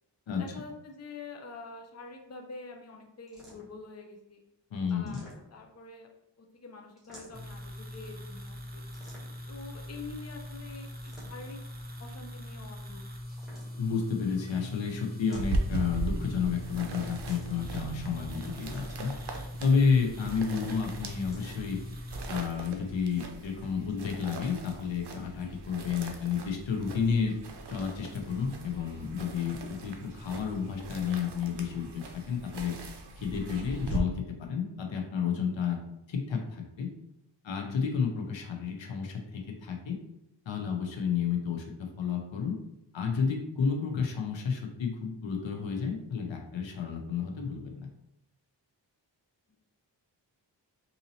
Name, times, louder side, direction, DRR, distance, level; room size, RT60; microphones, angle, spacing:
voice 1, 0.3-4.4 4.9-6.1 6.4-8.9 9.5-11.6 12.0-13.0 49.5-49.6, left 4 dB, 35° left, 3 dB, 0.6 m, -46 dB
sound 1, 3.3-3.9 4.9-5.8 7.0-7.6 8.9-9.6 10.9-11.6 13.2-14.0 15.1-15.9 17.2-17.7 19.1-19.8 21.1-21.6, equal, ahead, 1.3 m, -54 dB
voice 2, 4.7-5.2 13.8-21.8 22.3-27.3 27.7-32.8 33.2-35.8 36.1-36.9 37.4-40.0 40.5-42.6 42.9-47.9, left 6 dB, 90° left, 3 dB, 0.7 m, -31 dB
sound 2, 7.3-22.4, left 1 dB, 20° right, 0.6 m, -42 dB
sound 3, 15.3-34.0, right 2 dB, 65° right, 0.6 m, -39 dB
3.9 x 2.8 x 2.7 m, 0.80 s
wide cardioid pair, 85°, 44 cm